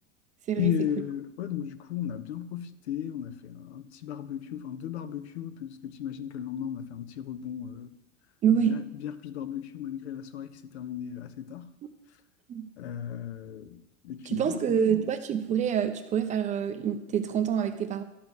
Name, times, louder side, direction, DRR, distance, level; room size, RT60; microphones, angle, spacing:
voice 1, 0.6-7.9 8.6-11.7 12.8-15.0, left 10 dB, 55° left, 0.8 m, -35 dB
voice 2, 8.4-8.8 11.8-11.9 12.5-12.7 14.3-18.0, right 8 dB, 20° right, 0.5 m, -26 dB
11.5 x 5.1 x 6.2 m
figure-of-eight pair, 85°, 39 cm